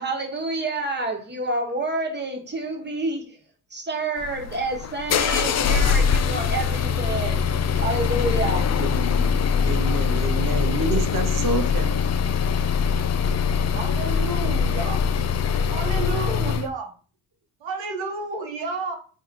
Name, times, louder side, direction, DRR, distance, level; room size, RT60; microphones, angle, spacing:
voice 1, 0.0-8.7, right 2 dB, 25° right, 3 dB, 1.3 m, -29 dB
sound 1, 4.2-16.7, left 6 dB, 40° left, 0.5 m, -23 dB
voice 2, 8.8-11.9, right 3 dB, 45° right, 6 dB, 0.9 m, -29 dB
voice 3, 13.5-15.0 15.6-16.9 17.6-19.0, right 3 dB, 75° right, 3 dB, 1.2 m, -31 dB
3.5 x 2.6 x 3.7 m, 0.39 s
supercardioid pair, 55°, 45 cm